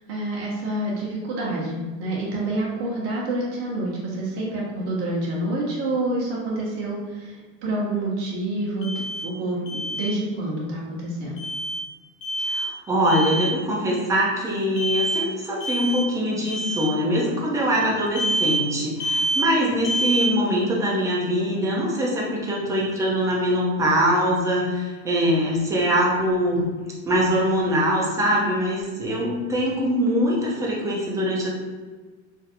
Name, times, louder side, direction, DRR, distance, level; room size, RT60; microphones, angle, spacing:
voice 1, 0.1-7.3 7.6-8.9 9.2-11.4, right 1 dB, 35° right, -5 dB, 0.8 m, -27 dB
Alarm, 8.8-9.3 9.7-10.1 11.4-11.8 12.2-12.7 13.0-13.5 14.8-15.3 15.6-16.1 16.4-16.9 18.2-18.6 19.0-19.5 19.8-20.3, right 1 dB, 55° left, 0.8 m, -26 dB
voice 2, 12.4-26.7 27.1-31.5, equal, 10° right, -4 dB, 0.3 m, -23 dB
3.9 x 2.7 x 2.5 m, 1.4 s
supercardioid pair, 145°, 40 cm